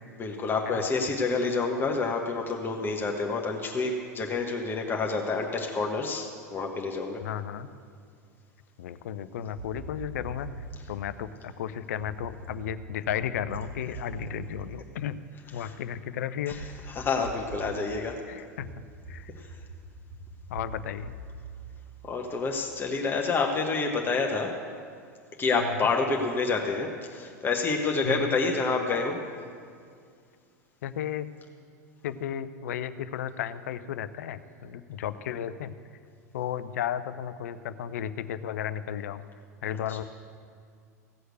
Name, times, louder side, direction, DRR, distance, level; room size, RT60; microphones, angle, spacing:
voice 1, 0.2-7.2 15.6-15.7 16.5-16.6 16.9-18.2 19.4-19.5 22.0-24.5 25.4-29.2 39.9-40.0, left 4 dB, 25° left, 1 dB, 1.2 m, -28 dB
voice 2, 7.2-7.7 8.8-10.5 10.9-15.2 15.5-16.6 18.3-18.7 19.1-19.3 20.5-21.1 25.6-25.9 28.0-28.4 30.8-31.3 32.0-35.7 36.3-39.2 39.6-40.0, left 9 dB, 65° left, 13 dB, 0.6 m, -34 dB
sound 1, 9.6-10.9 12.0-15.7 16.6-17.8 18.6-22.5, right 3 dB, 45° right, 2.2 m, -43 dB
16.0 x 6.4 x 8.0 m, 2.2 s
figure-of-eight pair, 85°, 9 cm